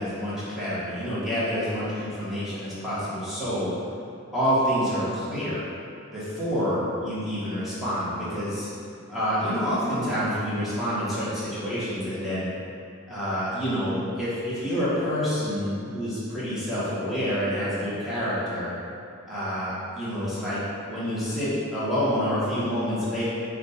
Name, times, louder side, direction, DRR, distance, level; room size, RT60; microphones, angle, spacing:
voice 1, 0.0-3.7 4.3-5.6 6.1-8.7 9.1-12.5 13.1-18.7 19.3-20.6 20.9-23.2, equal, ahead, -12 dB, 1.0 m, -27 dB
5.1 x 2.2 x 4.0 m, 2.5 s
head